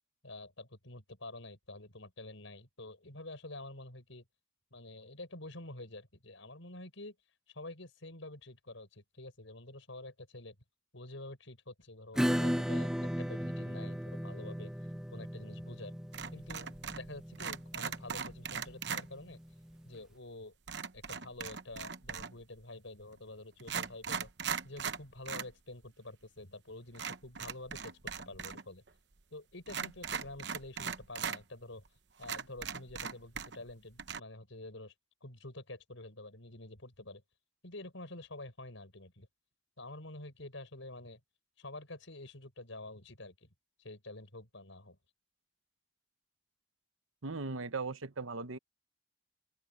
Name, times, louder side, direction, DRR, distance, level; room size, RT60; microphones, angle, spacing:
voice 1, 0.2-4.2 4.7-7.2 7.5-10.6 10.9-14.7 15.1-15.9 16.3-19.4 19.9-20.5 20.9-24.3 24.6-28.8 29.3-31.8 32.2-34.9 35.2-37.2 37.6-39.3 39.8-41.2 41.6-43.5 43.8-45.0, left 2 dB, 75° left, 5.6 m, -48 dB
Acoustic guitar / Strum, 12.2-19.4, equal, 5° right, 0.8 m, -36 dB
sound 1, 16.1-17.1 17.4-19.1 20.7-22.4 23.1-23.2 23.6-25.5 25.8-25.9 26.9-28.6 28.9-29.0 29.7-31.4 31.9-32.0 32.2-33.7 34.0-34.2, right 6 dB, 55° right, 1.0 m, -39 dB
voice 2, 47.2-48.6, right 4 dB, 85° right, 1.1 m, -38 dB
open air
head